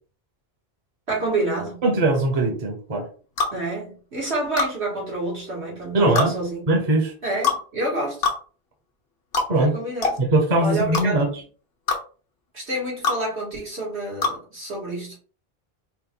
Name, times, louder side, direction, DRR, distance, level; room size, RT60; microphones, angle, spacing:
voice 1, 1.1-1.8 3.5-6.6 7.2-8.2 9.6-10.2 10.6-11.2 12.5-15.2, right 2 dB, 85° right, 2.5 m, -28 dB
voice 2, 1.8-3.1 5.9-6.3 6.7-7.1 9.5-9.7 10.2-11.3, right 2 dB, 40° right, 0.9 m, -20 dB
sound 1, 3.4-3.6 4.6-4.7 6.2-6.3 7.4-7.6 8.2-8.4 9.3-9.5 10.0-10.2 10.9-11.1 11.9-12.0 13.0-13.2 14.2-14.4, left 4 dB, 65° left, 1.2 m, -23 dB
4.5 x 2.5 x 3.7 m
omnidirectional pair, 1.1 m